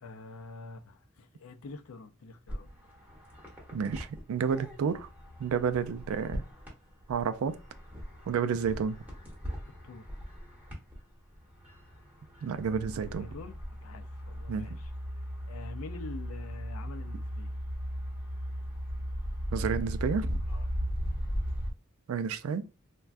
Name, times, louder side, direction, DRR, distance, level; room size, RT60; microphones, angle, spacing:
voice 1, 0.0-3.0 9.8-10.2 13.2-14.9 15.2-17.6 20.5-20.7, left 3 dB, 75° left, 0.5 m, -46 dB
sound 1, 2.5-11.0 11.3-21.7, equal, 10° right, 0.9 m, -38 dB
voice 2, 3.7-5.1 5.4-6.4 7.1-7.6 8.3-9.0 12.4-13.3 14.5-14.8 19.5-20.4 22.1-22.6, right 6 dB, 70° right, 0.3 m, -30 dB
3.3 x 2.2 x 2.5 m
head